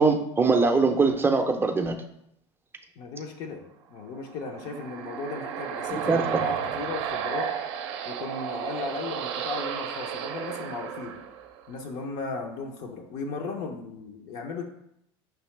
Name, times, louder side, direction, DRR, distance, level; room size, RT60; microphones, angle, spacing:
voice 1, 0.0-2.0 5.9-6.4, right 4 dB, 15° right, 4 dB, 0.5 m, -22 dB
voice 2, 3.0-7.5 8.1-11.1 11.7-14.6, left 4 dB, 55° left, 2 dB, 0.7 m, -36 dB
sound 1, 4.2-11.8, right 8 dB, 65° right, 0.5 m, -33 dB
5.9 x 2.7 x 3.2 m, 0.77 s
hypercardioid pair, 90°, 15 cm